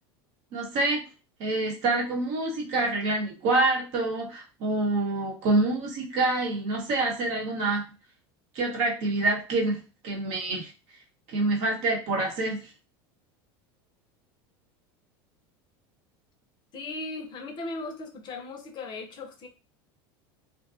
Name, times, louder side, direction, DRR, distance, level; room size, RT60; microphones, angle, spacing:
voice 1, 0.5-1.0 1.4-7.8 8.5-10.7 11.3-12.6, right 2 dB, 60° right, -1 dB, 1.0 m, -26 dB
voice 2, 16.7-19.5, left 2 dB, 40° left, 4 dB, 0.6 m, -37 dB
2.6 x 2.2 x 2.5 m, 0.33 s
supercardioid pair, 110°, 12 cm